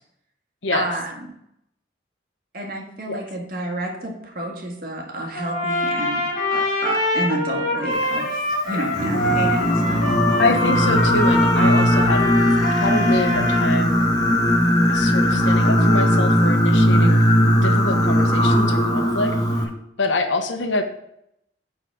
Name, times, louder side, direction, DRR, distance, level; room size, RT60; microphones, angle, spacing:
voice 1, 0.7-1.1 2.5-6.2 6.5-10.1 16.9-17.2, right 1 dB, 50° right, 1 dB, 1.8 m, -30 dB
Trumpet, 5.3-13.7, left 1 dB, 40° left, 2.0 m, -24 dB
Singing, 8.9-19.6, equal, 20° left, 1.3 m, -18 dB
voice 2, 10.4-12.3 12.8-14.0 14.9-17.2 17.5-19.7 20.0-20.8, left 2 dB, 80° left, 6 dB, 1.2 m, -25 dB
8.9 x 4.2 x 6.5 m, 0.76 s
head